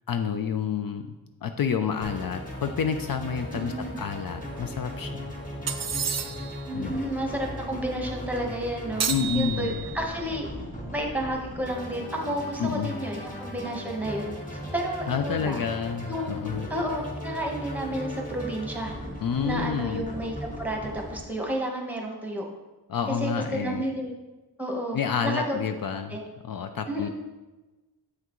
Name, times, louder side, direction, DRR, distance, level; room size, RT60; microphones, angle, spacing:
voice 1, 0.1-1.1 1.4-5.2 6.7-7.0 9.1-9.7 12.6-12.9 15.1-16.7 19.2-20.0 22.9-23.8 24.9-26.2 26.4-27.1, left 7 dB, 60° left, 7 dB, 0.5 m, -29 dB
sound 1, 2.0-21.2, equal, 20° left, 1.4 m, -38 dB
voice 2, 3.5-4.0 6.7-9.1 9.3-10.5 10.9-15.6 16.1-16.4 16.7-18.9 19.4-22.4 23.1-24.1 24.6-25.7 26.1-26.2 26.9-27.1, right 1 dB, 5° right, 0 dB, 1.1 m, -31 dB
sound 2, 5.7-6.6 9.0-10.1, right 7 dB, 40° right, 0.5 m, -30 dB
7.7 x 5.8 x 3.0 m, 1.2 s
wide cardioid pair, 95°, 40 cm